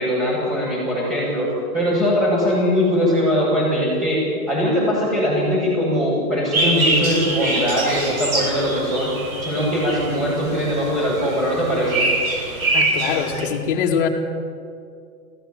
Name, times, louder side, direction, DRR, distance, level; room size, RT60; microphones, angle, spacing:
voice 1, 0.0-9.1 9.4-12.1, equal, 20° right, -9 dB, 7.9 m, -21 dB
sound 1, 6.5-13.4, right 2 dB, 65° right, 7.8 m, -24 dB
voice 2, 12.7-14.1, left 7 dB, 35° left, 1 dB, 2.3 m, -22 dB
20.0 x 16.0 x 9.5 m, 2.4 s
hypercardioid pair, 160°, 45 cm